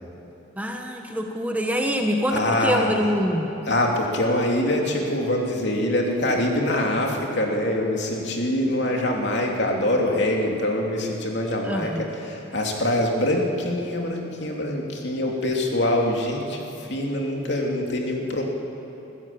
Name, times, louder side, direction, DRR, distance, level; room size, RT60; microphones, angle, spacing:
voice 1, 0.6-3.5 11.6-12.1, equal, 10° right, 2 dB, 1.2 m, -25 dB
voice 2, 2.3-2.9 3.7-18.4, left 1 dB, 60° left, 0 dB, 3.0 m, -24 dB
26.5 x 14.5 x 8.8 m, 3.0 s
head